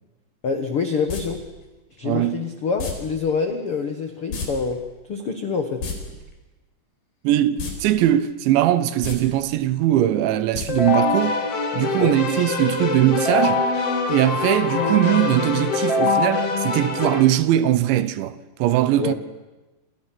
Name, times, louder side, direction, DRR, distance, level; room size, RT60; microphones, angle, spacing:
voice 1, 0.4-1.4 2.0-4.8 5.1-5.9 12.0-12.2 19.0-19.1, left 5 dB, 80° left, 1.2 m, -26 dB
sound 1, 1.1-1.2 2.8-2.9 4.3-4.5 4.7-4.8 5.7-5.9 7.6-7.7 8.1-8.2 8.9-9.2 10.5-10.7 11.0-11.1, left 5 dB, 60° left, 6.2 m, -29 dB
voice 2, 2.0-2.5 7.2-11.4 11.7-13.7 14.1-19.1, right 13 dB, 85° right, 3.4 m, -20 dB
Keyboard (musical), 10.7-17.2, left 3 dB, 40° left, 2.6 m, -23 dB
28.5 x 27.5 x 6.0 m
omnidirectional pair, 5.1 m